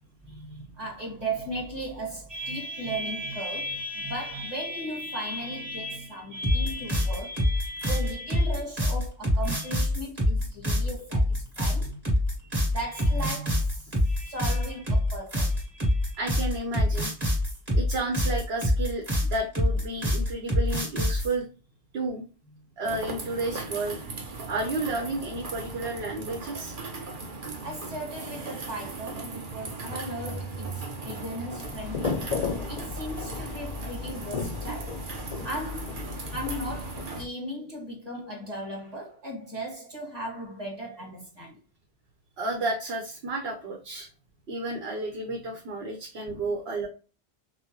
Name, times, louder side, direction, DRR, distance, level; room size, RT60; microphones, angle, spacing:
voice 1, 0.2-12.0 12.5-16.2 27.6-32.3 32.7-35.1 35.4-41.6 46.3-46.5, equal, 25° right, 1.8 m, -36 dB
sound 1, 6.4-21.3, left 1 dB, 40° right, 2.3 m, -25 dB
voice 2, 16.2-17.1 17.7-21.5 21.9-22.2 22.8-24.0 24.5-26.7 42.4-44.1 44.5-46.9, right 2 dB, 75° right, 1.2 m, -31 dB
sound 2, 22.8-37.3, right 3 dB, 55° right, 1.0 m, -38 dB
sound 3, 31.6-37.0, left 5 dB, 50° left, 0.5 m, -34 dB
5.9 x 2.2 x 3.0 m
omnidirectional pair, 1.1 m